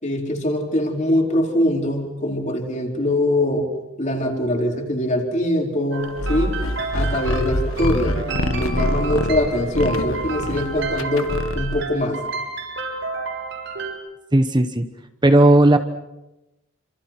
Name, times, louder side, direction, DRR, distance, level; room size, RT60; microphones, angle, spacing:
voice 1, 0.0-3.7 4.0-6.6 6.9-12.2, left 1 dB, 35° left, 2 dB, 4.4 m, -23 dB
sound 1, 5.9-13.9, right 3 dB, 65° right, 7.5 m, -31 dB
sound 2, 6.2-11.9, left 1 dB, 85° left, 1.6 m, -26 dB
voice 2, 14.3-14.8 15.2-15.8, right 1 dB, 20° right, 8 dB, 1.1 m, -14 dB
28.5 x 26.5 x 6.1 m, 0.96 s
head